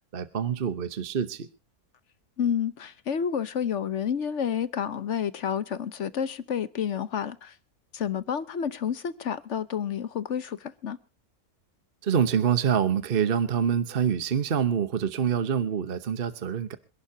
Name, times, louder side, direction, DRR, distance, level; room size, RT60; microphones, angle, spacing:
voice 1, 0.1-1.5 12.0-16.8, right 8 dB, 40° right, 1.1 m, -26 dB
voice 2, 2.4-7.5 7.9-11.0, left 8 dB, 55° left, 1.2 m, -30 dB
27.5 x 11.5 x 2.8 m
omnidirectional pair, 1.6 m